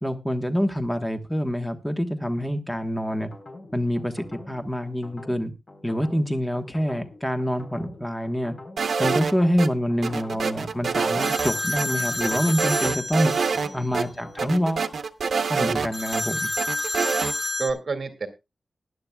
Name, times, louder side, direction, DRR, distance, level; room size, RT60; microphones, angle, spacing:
voice 1, 0.0-3.3 3.7-5.5 5.8-8.5 9.0-13.3 13.7-14.9 15.5-16.5, equal, 10° left, 1.2 m, -26 dB
sound 1, 3.1-14.5, left 2 dB, 55° left, 3.8 m, -45 dB
sound 2, 8.8-9.7 10.0-11.5 11.8-11.9 12.2-13.7 13.9-14.0 14.4-16.2 16.6-17.3, right 5 dB, 80° right, 0.8 m, -26 dB
sound 3, 11.2-13.7 15.9-17.7, left 1 dB, 25° left, 1.7 m, -29 dB
voice 2, 13.6-14.1 17.6-18.3, right 4 dB, 55° right, 2.0 m, -30 dB
19.5 x 10.5 x 2.3 m
wide cardioid pair, 135°, 0 cm